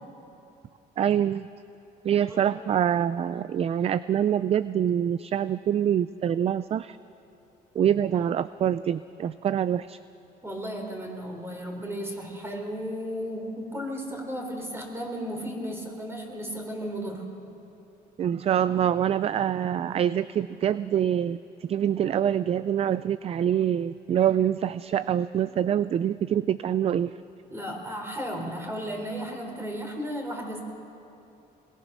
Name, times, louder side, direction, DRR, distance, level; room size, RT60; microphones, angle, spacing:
voice 1, 1.0-1.5 2.0-7.0 7.8-10.0 18.2-27.1, right 9 dB, 35° right, 16 dB, 0.4 m, -25 dB
voice 2, 10.4-17.2 27.5-30.6, equal, 15° right, 2 dB, 4.0 m, -34 dB
21.5 x 20.5 x 6.2 m, 2.9 s
cardioid pair, 110°, 17 cm